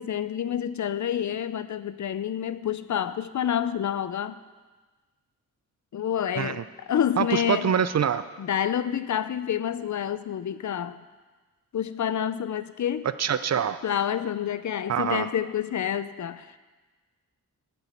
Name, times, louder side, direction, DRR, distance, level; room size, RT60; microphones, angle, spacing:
voice 1, 0.0-4.4 5.9-7.7 8.4-11.0 11.7-13.1 13.8-16.6, left 9 dB, 55° left, 14 dB, 0.6 m, -28 dB
voice 2, 7.2-8.2 13.2-13.8 14.9-15.3, right 8 dB, 45° right, 13 dB, 0.6 m, -25 dB
9.0 x 6.9 x 8.5 m, 1.3 s
cardioid pair, 60°, 36 cm